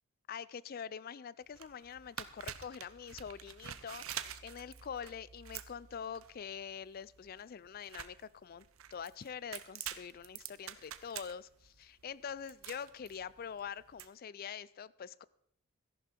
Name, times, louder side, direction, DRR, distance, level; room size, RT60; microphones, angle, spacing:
voice 1, 0.3-8.7 8.9-15.2, left 7 dB, 45° left, 0.4 m, -45 dB
sound 1, 1.4-14.1, right 10 dB, 80° right, 0.7 m, -48 dB
14.0 x 11.0 x 4.4 m
head